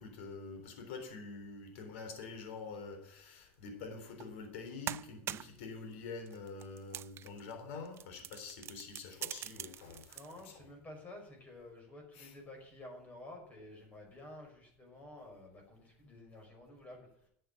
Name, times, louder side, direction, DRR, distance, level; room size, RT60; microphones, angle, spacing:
voice 1, 0.0-10.7 12.1-12.3, left 4 dB, 80° left, 5 dB, 3.7 m, -46 dB
sound 1, 4.2-4.3 4.6-5.6 6.3-7.5 7.8-10.4, right 12 dB, 40° right, 0.4 m, -44 dB
voice 2, 10.1-17.1, left 1 dB, 25° left, 2 dB, 5.7 m, -51 dB
12.0 x 7.7 x 8.4 m, 0.67 s
supercardioid pair, 120°, 7 cm